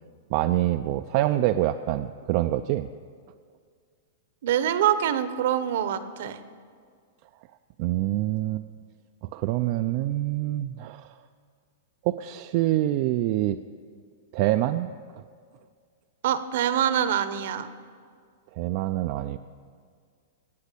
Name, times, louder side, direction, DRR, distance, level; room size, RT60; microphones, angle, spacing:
voice 1, 0.3-2.9 7.8-8.6 9.3-11.2 12.0-13.6 14.3-14.9 18.5-19.4, right 15 dB, 45° right, 8 dB, 0.4 m, -25 dB
voice 2, 4.4-6.4 16.2-17.7, right 10 dB, 65° right, 12 dB, 0.9 m, -25 dB
18.0 x 6.5 x 8.4 m, 2.1 s
supercardioid pair, 155°, 0 cm